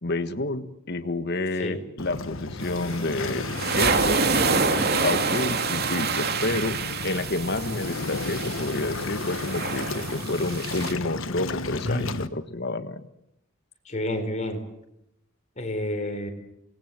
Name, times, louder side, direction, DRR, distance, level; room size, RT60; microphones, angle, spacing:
voice 1, 0.0-3.5 3.8-4.2 5.0-6.8 7.0-13.1, left 2 dB, 55° left, 10 dB, 1.6 m, -29 dB
Waves surf, 2.0-12.3, left 3 dB, 80° left, 1.4 m, -33 dB
sound 1, 2.6-10.9, right 4 dB, 55° right, 2.7 m, -27 dB
voice 2, 13.9-14.6 15.6-16.3, left 1 dB, 35° left, 5 dB, 4.5 m, -29 dB
27.5 x 20.0 x 7.7 m, 0.81 s
head